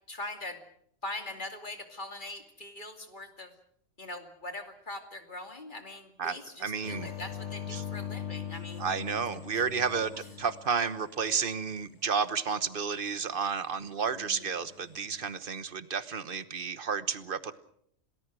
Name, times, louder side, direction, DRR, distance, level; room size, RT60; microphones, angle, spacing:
voice 1, 0.1-0.6 1.0-3.5 4.0-8.9 9.5-9.6 14.2-14.5, left 2 dB, 40° left, 6 dB, 2.8 m, -42 dB
voice 2, 6.2-7.1 7.7-7.8 8.8-10.1 10.4-17.5, right 6 dB, 50° right, 13 dB, 1.3 m, -31 dB
sound 1, 6.8-11.4 14.7-15.2, left 9 dB, 70° left, 2.2 m, -41 dB
27.5 x 19.0 x 6.2 m, 0.68 s
omnidirectional pair, 1.2 m